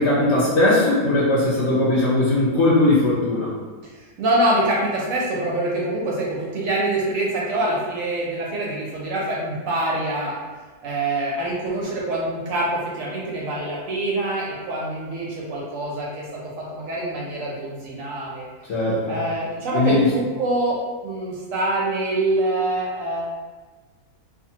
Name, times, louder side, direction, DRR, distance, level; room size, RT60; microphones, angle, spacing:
voice 1, 0.0-3.5 18.7-19.2 19.7-20.0, left 2 dB, 60° left, -7 dB, 0.8 m, -19 dB
voice 2, 4.2-10.3 10.8-18.5 19.1-20.8 21.0-23.2, right 1 dB, 70° right, -4 dB, 0.8 m, -25 dB
2.5 x 2.4 x 2.7 m, 1.3 s
omnidirectional pair, 1.6 m